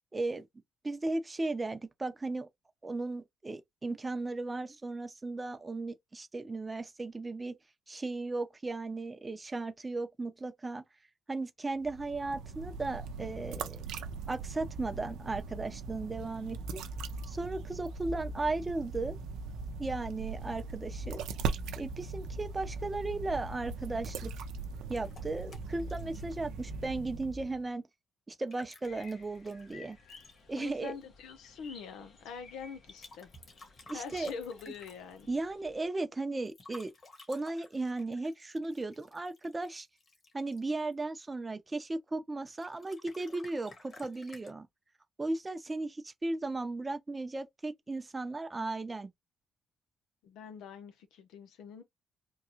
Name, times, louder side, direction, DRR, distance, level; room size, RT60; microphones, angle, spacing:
voice 1, 0.1-0.5 0.8-2.5 2.8-7.6 7.9-10.8 11.3-13.8 14.3-16.8 17.3-19.2 19.8-21.2 21.8-24.4 24.9-27.8 28.3-30.0 30.5-30.9 33.9-34.3 35.3-36.9 37.3-39.9 40.3-44.7 45.2-49.1, right 2 dB, 20° right, 0.7 m, -36 dB
sound 1, 11.8-27.7, right 4 dB, 90° right, 0.6 m, -40 dB
sound 2, 24.9-26.7 28.3-30.6 32.9-35.3 36.5-41.0 42.4-44.5, left 2 dB, 40° left, 1.7 m, -55 dB
sound 3, 28.8-35.9, left 4 dB, 65° left, 1.2 m, -57 dB
voice 2, 30.6-33.3 33.9-35.3 50.2-51.8, left 6 dB, 90° left, 0.8 m, -44 dB
3.6 x 2.3 x 2.9 m
cardioid pair, 90°, 0 cm